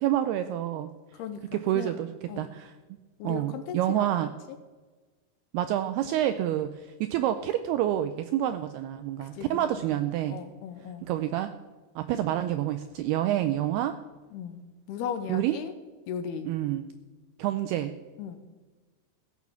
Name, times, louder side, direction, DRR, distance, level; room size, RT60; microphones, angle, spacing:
voice 1, 0.0-0.9 1.5-2.1 2.4-2.7 3.2-4.3 5.5-10.4 11.1-11.5 12.0-14.0 15.3-15.6 16.5-16.9 17.4-17.9, right 12 dB, 85° right, 10 dB, 2.3 m, -28 dB
voice 2, 1.2-2.0 2.3-2.5 3.2-4.1 9.2-9.5 10.3-11.1 14.3-15.7 16.1-16.5 18.2-18.4, left 8 dB, 75° left, 8 dB, 2.5 m, -37 dB
16.0 x 8.2 x 7.2 m, 1.3 s
omnidirectional pair, 5.2 m